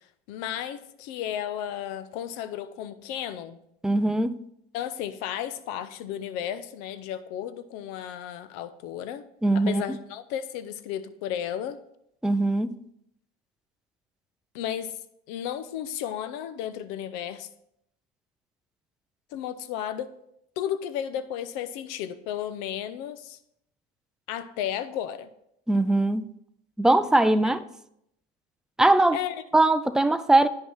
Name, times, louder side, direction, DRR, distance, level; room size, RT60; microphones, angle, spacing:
voice 1, 0.3-3.6 4.7-9.3 9.5-11.8 14.5-14.9 15.3-17.5 19.3-20.1 20.6-23.4 24.3-25.3 27.4-27.5 29.1-29.3, left 10 dB, 70° left, 0.8 m, -33 dB
voice 2, 3.8-4.4 9.4-10.0 12.2-12.8 25.7-26.2 26.8-27.6 28.8-29.2 29.5-30.5, right 2 dB, ahead, 0.4 m, -21 dB
9.1 x 5.4 x 4.5 m
hypercardioid pair, 80°, 30 cm